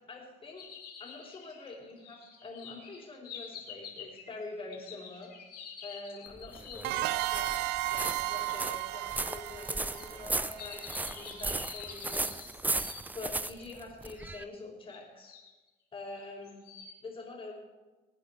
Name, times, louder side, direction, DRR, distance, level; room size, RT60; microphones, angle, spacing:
voice 1, 0.1-0.7 1.0-5.3 5.8-7.5 7.9-12.8 13.1-15.3 15.9-16.6 17.0-17.5, left 3 dB, 30° left, -8 dB, 3.8 m, -45 dB
sound 1, 0.6-7.6 8.5-8.6 9.9-13.6 14.2-14.3 14.9-15.5 16.2-17.0, left 6 dB, 65° left, 3.2 m, -48 dB
sound 2, 6.3-14.4, right 2 dB, 10° right, 0.4 m, -36 dB
sound 3, 6.8-11.3, right 16 dB, 90° right, 0.5 m, -34 dB
21.0 x 9.1 x 4.3 m, 1.2 s
cardioid pair, 110°, 17 cm